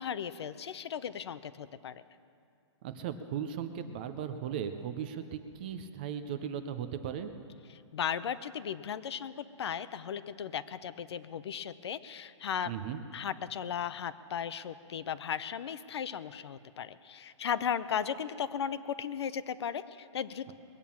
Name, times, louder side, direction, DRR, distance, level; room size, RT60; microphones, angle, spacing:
voice 1, 0.0-2.0 7.7-12.7 13.1-20.5, left 8 dB, 60° left, 14 dB, 0.6 m, -36 dB
voice 2, 2.8-7.3 12.7-13.0, right 8 dB, 20° right, 9 dB, 0.4 m, -37 dB
21.0 x 9.1 x 7.1 m, 2.4 s
hypercardioid pair, 175°, 16 cm